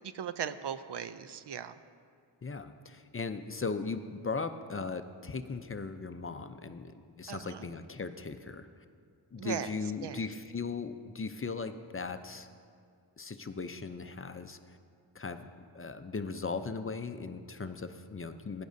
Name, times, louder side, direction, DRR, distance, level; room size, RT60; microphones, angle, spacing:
voice 1, 0.1-1.8 7.3-7.7 9.4-9.7 10.0-10.3, right 8 dB, 65° right, 12 dB, 0.6 m, -38 dB
voice 2, 2.4-8.7 9.3-12.5 13.2-14.6 15.1-15.5 15.7-18.6, left 4 dB, 30° left, 9 dB, 0.5 m, -38 dB
15.5 x 10.5 x 2.7 m, 2.3 s
cardioid pair, 50°, 46 cm